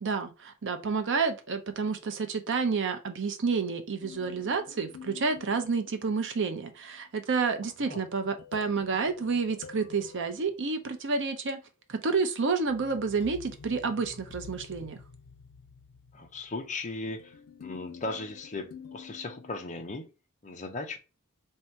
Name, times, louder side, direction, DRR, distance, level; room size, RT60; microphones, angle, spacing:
voice 1, 0.0-11.6 11.9-15.0, right 4 dB, 60° right, 0.6 m, -29 dB
sound 1, 4.0-6.6 8.2-11.2 12.7-20.0, left 6 dB, 75° left, 0.5 m, -49 dB
voice 2, 16.1-20.1 20.4-21.0, left 2 dB, 35° left, 0.7 m, -37 dB
3.4 x 2.7 x 4.5 m
head